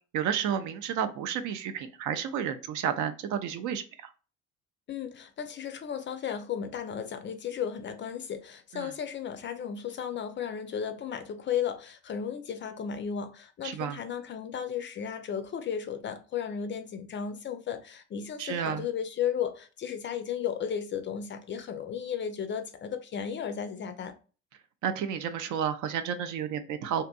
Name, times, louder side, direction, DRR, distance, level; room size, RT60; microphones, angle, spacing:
voice 1, 0.1-4.1 8.7-8.9 13.6-14.0 18.4-18.9 24.8-27.0, right 8 dB, 55° right, 0.5 m, -31 dB
voice 2, 4.9-24.1, left 8 dB, 35° left, 0.4 m, -34 dB
2.6 x 2.5 x 2.2 m
hypercardioid pair, 55°, 35 cm